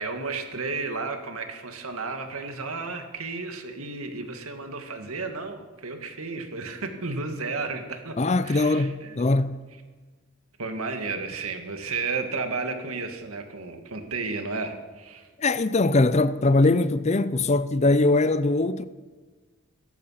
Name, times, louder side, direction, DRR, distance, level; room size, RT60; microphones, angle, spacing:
voice 1, 0.0-8.2 8.4-9.2 10.6-15.3, right 4 dB, 85° right, 2.0 m, -33 dB
voice 2, 8.2-9.6 15.4-18.8, left 2 dB, 30° left, 0.5 m, -21 dB
16.0 x 14.0 x 5.8 m
head